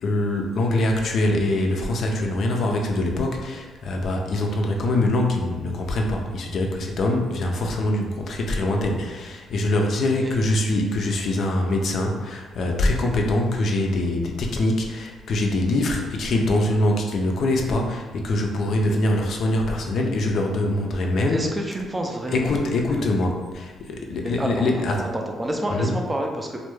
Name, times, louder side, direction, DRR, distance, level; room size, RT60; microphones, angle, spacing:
voice 1, 0.0-21.4 22.3-24.9 25.7-25.9, left 1 dB, 60° left, 1 dB, 0.4 m, -23 dB
voice 2, 21.3-22.6 24.2-24.7 25.0-26.6, right 1 dB, 15° right, 1 dB, 0.4 m, -28 dB
2.2 x 2.1 x 3.0 m, 1.3 s
cardioid pair, 90°, 0 cm